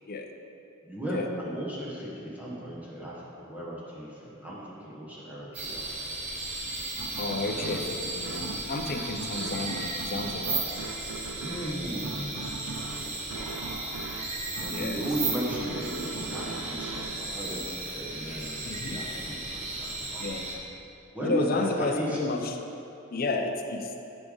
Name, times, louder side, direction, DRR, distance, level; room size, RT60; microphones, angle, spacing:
voice 1, 0.8-5.9 7.4-7.9 11.3-14.1 14.6-17.7 17.9-20.2 21.1-22.2, right 1 dB, 5° right, -6 dB, 1.2 m, -36 dB
sound 1, 5.5-20.6, right 2 dB, 30° right, 1.0 m, -35 dB
sound 2, 7.0-18.2, right 4 dB, 75° right, 0.4 m, -41 dB
voice 2, 7.2-10.6 14.7-15.0 18.6-18.9 20.2-20.5 21.2-22.4 23.1-23.9, left 3 dB, 45° left, 4 dB, 0.5 m, -31 dB
10.5 x 4.9 x 3.9 m, 2.9 s
head